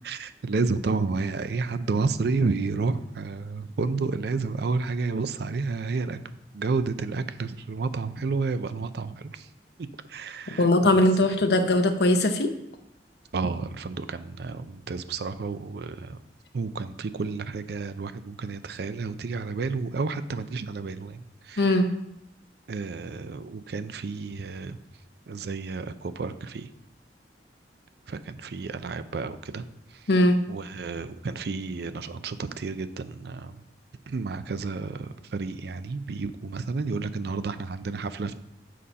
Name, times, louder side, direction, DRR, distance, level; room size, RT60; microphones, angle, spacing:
voice 1, 0.0-6.2 6.5-9.5 9.8-11.0 13.3-16.2 16.5-21.8 22.7-24.8 25.3-26.7 28.1-29.7 29.9-33.6 34.1-38.4, right 4 dB, 65° right, 12 dB, 0.4 m, -31 dB
voice 2, 10.6-12.5 21.6-21.9 30.1-30.4, left 1 dB, 65° left, 7 dB, 0.7 m, -20 dB
7.5 x 4.2 x 5.3 m, 0.83 s
head